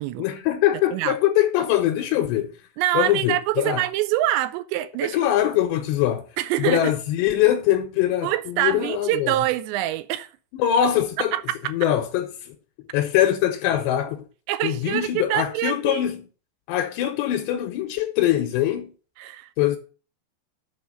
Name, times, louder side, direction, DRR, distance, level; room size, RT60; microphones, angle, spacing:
voice 1, 0.2-2.5 2.9-3.8 5.0-6.3 6.6-9.3 10.5-11.3 11.7-12.6 12.9-14.3 14.6-16.3 16.7-18.9 19.6-19.8, left 12 dB, 80° left, 2.8 m, -22 dB
voice 2, 2.8-5.3 6.4-6.9 8.2-10.3 11.3-11.7 14.5-16.0 19.2-19.5, right 15 dB, 80° right, 2.7 m, -25 dB
7.0 x 5.8 x 6.8 m
omnidirectional pair, 5.4 m